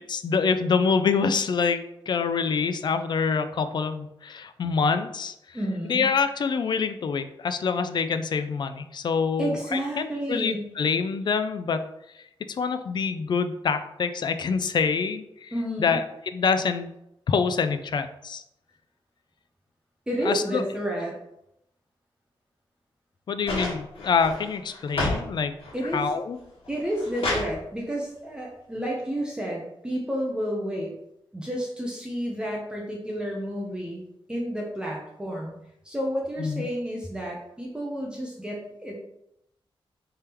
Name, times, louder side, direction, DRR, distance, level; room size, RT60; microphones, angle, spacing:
voice 1, 0.1-5.6 5.8-11.8 12.6-15.5 15.8-16.9 17.3-18.4 20.2-20.6 23.3-25.6 25.9-26.4 36.4-36.7, left 5 dB, 50° left, 9 dB, 0.3 m, -26 dB
voice 2, 5.5-6.1 9.4-10.7 15.5-16.0 20.1-21.2 25.7-26.0 26.7-30.9 31.3-35.5 35.8-39.0, equal, 10° right, -2 dB, 0.6 m, -31 dB
sound 1, 23.5-25.2 25.6-26.1 26.6-27.5 28.7-28.8, left 2 dB, 85° left, 1.6 m, -30 dB
3.4 x 3.4 x 4.3 m, 0.80 s
wide cardioid pair, 155°, 10 cm